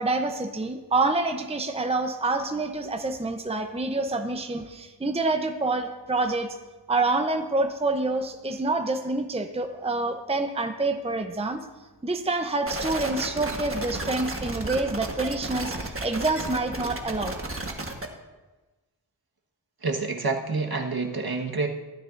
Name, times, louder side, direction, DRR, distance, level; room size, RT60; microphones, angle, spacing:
voice 1, 0.0-6.5 6.9-11.6 12.0-17.3, right 2 dB, 15° right, 6 dB, 0.7 m, -27 dB
sound 1, 12.7-18.1, right 2 dB, 30° right, 1.4 m, -33 dB
voice 2, 19.8-21.7, right 3 dB, 55° right, 1 dB, 1.5 m, -28 dB
15.5 x 12.5 x 2.6 m, 1.2 s
wide cardioid pair, 60°, 43 cm